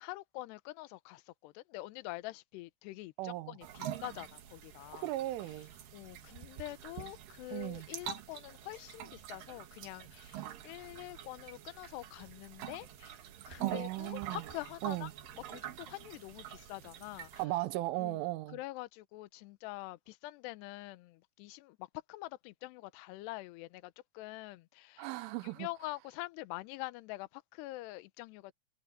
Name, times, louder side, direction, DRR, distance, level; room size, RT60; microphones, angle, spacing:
voice 1, 0.0-5.1 5.9-13.2 13.5-15.1 15.5-17.3 18.0-18.2 18.5-25.1 25.4-28.5, left 20 dB, 75° left, 2.6 m, -45 dB
voice 2, 3.2-3.6 4.9-5.7 7.5-7.9 13.6-14.4 14.8-15.1 17.4-18.6 25.0-25.7, right 17 dB, 85° right, 3.4 m, -37 dB
sound 1, 3.6-17.4, right 11 dB, 65° right, 2.3 m, -46 dB
omnidirectional pair, 5.6 m